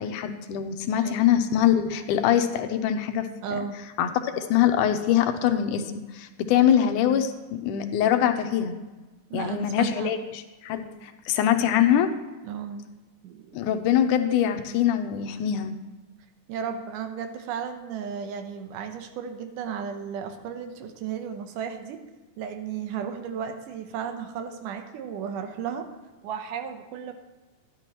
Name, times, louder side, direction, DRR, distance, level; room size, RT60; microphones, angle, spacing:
voice 1, 0.0-3.3 4.0-5.8 6.1-8.7 9.3-10.2 10.6-12.1 13.5-15.7, left 10 dB, 80° left, 7 dB, 2.2 m, -23 dB
voice 2, 3.4-3.8 9.3-10.1 12.4-12.9 13.2-13.9 16.5-22.0 22.4-25.9 26.2-27.1, right 7 dB, 85° right, 7 dB, 2.5 m, -34 dB
11.5 x 11.5 x 3.0 m, 1.2 s
omnidirectional pair, 3.6 m